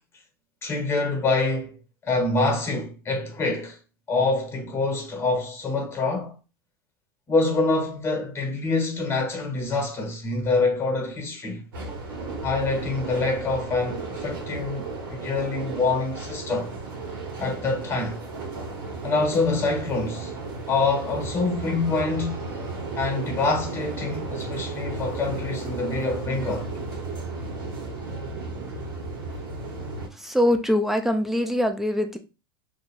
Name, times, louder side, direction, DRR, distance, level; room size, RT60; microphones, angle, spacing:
voice 1, 0.6-3.8 4.1-6.3 7.3-11.6 12.4-16.7 17.4-18.2 19.0-20.3 20.7-22.5 23.0-26.7, left 3 dB, 20° left, 1.6 m, -26 dB
sound 1, 11.7-30.1, right 3 dB, 75° right, 1.5 m, -34 dB
voice 2, 30.2-32.2, left 1 dB, ahead, 0.6 m, -23 dB
2.9 x 2.6 x 4.4 m
hypercardioid pair, 115°, 12 cm